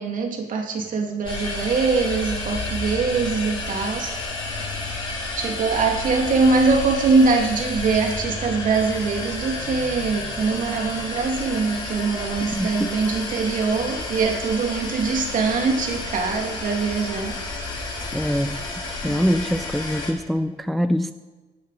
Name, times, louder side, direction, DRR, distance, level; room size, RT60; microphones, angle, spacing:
voice 1, 0.0-4.1 5.4-17.3, right 4 dB, 50° right, 2 dB, 2.4 m, -23 dB
sound 1, 1.2-20.1, left 2 dB, 30° left, 4.9 m, -31 dB
voice 2, 12.5-12.9 18.1-18.6 19.0-21.1, equal, ahead, 10 dB, 0.4 m, -24 dB
17.5 x 8.4 x 4.1 m, 1.3 s
cardioid pair, 110°, 17 cm